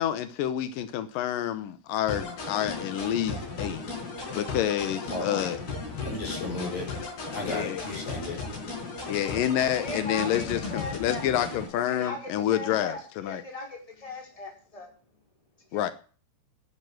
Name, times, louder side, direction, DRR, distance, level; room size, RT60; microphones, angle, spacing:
voice 1, 0.0-3.8 4.4-5.6 7.4-7.9 9.1-13.4 15.7-15.9, left 11 dB, 85° left, 1.9 m, -28 dB
sound 1, 2.1-11.7, left 3 dB, 55° left, 6.9 m, -36 dB
voice 2, 5.1-5.5 6.0-6.9 7.3-8.4, left 2 dB, 40° left, 6.3 m, -34 dB
voice 3, 9.6-11.2 11.9-14.9 15.7-15.8, left 2 dB, 5° left, 4.3 m, -39 dB
11.0 x 11.0 x 7.7 m
omnidirectional pair, 5.3 m